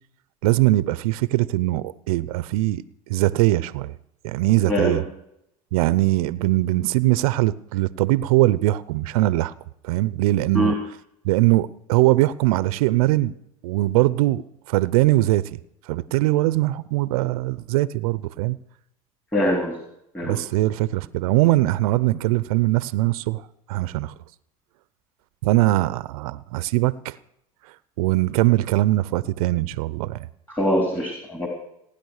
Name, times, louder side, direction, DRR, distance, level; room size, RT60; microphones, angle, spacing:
voice 1, 0.4-3.9 4.2-5.0 5.7-9.5 9.8-10.7 11.2-13.3 13.6-14.4 14.7-15.6 15.9-18.6 20.2-24.1 25.4-27.2 28.0-30.3, right 17 dB, 75° right, 18 dB, 0.8 m, -21 dB
voice 2, 4.7-5.0 10.5-10.7 19.3-19.8 20.1-20.4 30.6-31.5, equal, 5° left, 1 dB, 3.9 m, -23 dB
19.0 x 10.5 x 6.6 m, 0.77 s
supercardioid pair, 115°, 18 cm